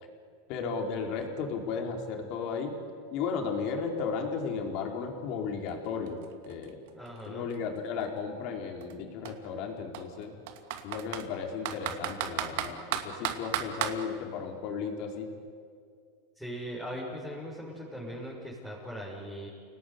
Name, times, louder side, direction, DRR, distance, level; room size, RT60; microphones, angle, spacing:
voice 1, 0.5-2.8 3.1-6.8 7.3-10.3 10.8-15.3, left 5 dB, 50° left, 3 dB, 4.6 m, -34 dB
Computer keyboard, 5.7-5.8 6.1-8.0 8.8-8.9 9.3-9.4 9.9-11.3 11.7-14.0, right 11 dB, 70° right, 2.4 m, -34 dB
voice 2, 6.9-7.5 16.3-19.5, equal, ahead, -6 dB, 6.4 m, -40 dB
29.5 x 19.0 x 9.8 m, 2.2 s
supercardioid pair, 135°, 0 cm